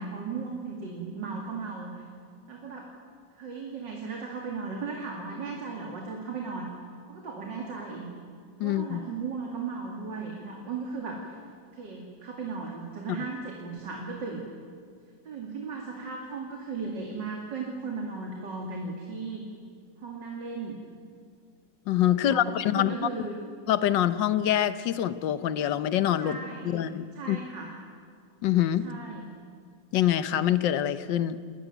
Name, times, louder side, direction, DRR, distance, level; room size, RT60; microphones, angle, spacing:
voice 1, 0.0-2.0 2.5-2.9 3.3-6.7 7.1-8.1 8.6-11.4 11.7-14.5 15.2-19.4 20.0-20.8 22.2-23.4 26.2-27.8 28.8-29.3, right 4 dB, 75° right, 0 dB, 3.0 m, -36 dB
voice 2, 8.6-9.0 21.9-22.9 23.7-26.4 26.6-27.4 28.4-28.8 29.9-31.4, left 11 dB, 80° left, 13 dB, 1.6 m, -25 dB
28.5 x 14.5 x 9.2 m, 2.1 s
omnidirectional pair, 2.0 m